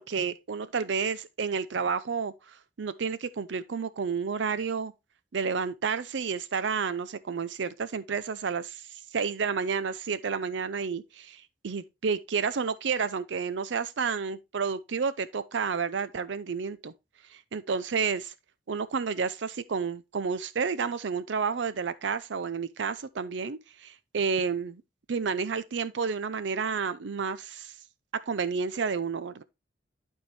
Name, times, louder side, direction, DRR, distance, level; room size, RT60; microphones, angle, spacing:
voice 1, 0.0-4.9 5.3-16.9 17.3-18.3 18.7-24.8 25.1-27.7 28.3-29.4, right 5 dB, 75° right, 0.5 m, -30 dB
11.5 x 4.5 x 3.2 m
head